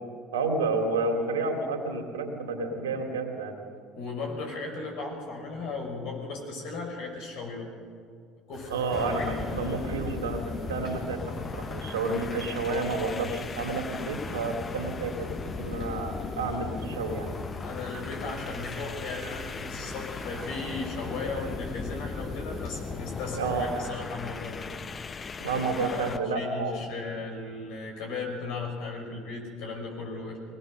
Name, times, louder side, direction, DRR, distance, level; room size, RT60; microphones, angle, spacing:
voice 1, 0.3-3.5 8.7-17.3 23.3-23.7 25.4-26.7, right 3 dB, 80° right, 4 dB, 2.7 m, -30 dB
voice 2, 3.9-7.7 8.5-10.0 17.6-24.7 25.5-30.4, left 3 dB, 60° left, 1 dB, 5.9 m, -37 dB
sound 1, 8.5-23.8, left 1 dB, 45° left, 7.3 m, -43 dB
sound 2, 8.9-26.3, left 5 dB, 30° left, 0.8 m, -38 dB
22.5 x 19.0 x 6.6 m, 2.2 s
hypercardioid pair, 65°, 0 cm